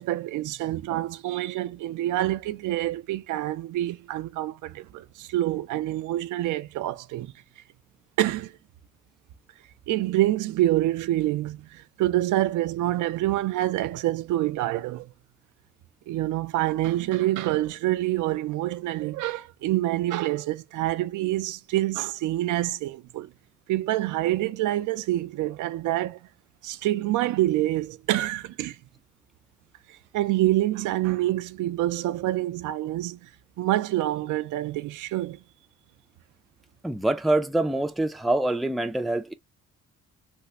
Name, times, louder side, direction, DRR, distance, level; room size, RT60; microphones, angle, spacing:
voice 1, 0.0-7.3 8.2-8.5 9.9-15.1 16.1-23.3 23.7-26.2 26.6-28.8 30.1-33.2 33.6-35.4, right 15 dB, 80° right, 0.5 m, -26 dB
voice 2, 36.8-39.3, right 2 dB, ahead, 0.4 m, -25 dB
3.4 x 2.4 x 2.9 m
cardioid pair, 90°, 30 cm